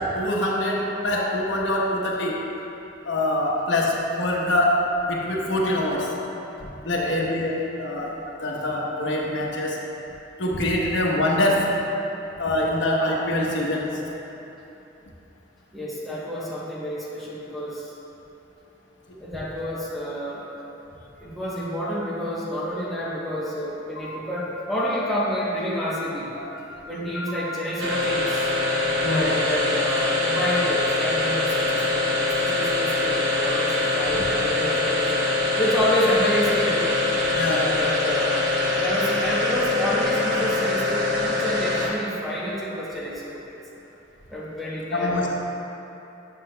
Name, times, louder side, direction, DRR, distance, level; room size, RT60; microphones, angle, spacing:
voice 1, 0.0-2.4 3.0-6.1 6.8-8.1 8.4-9.8 10.4-11.8 12.4-14.0 24.0-24.1 26.4-26.9 27.1-27.6 29.0-29.4 34.1-34.2 37.3-37.7 44.9-45.4, left 1 dB, 80° left, -2 dB, 0.9 m, -24 dB
voice 2, 6.9-7.2 15.7-17.9 19.2-20.5 21.2-26.3 26.9-28.5 29.1-35.1 35.6-36.9 37.5-38.4 38.7-43.6 44.3-45.2, equal, ahead, -8 dB, 0.9 m, -29 dB
sound 1, 27.8-42.1, left 2 dB, 75° right, 1.0 m, -24 dB
9.6 x 6.4 x 2.2 m, 3.0 s
head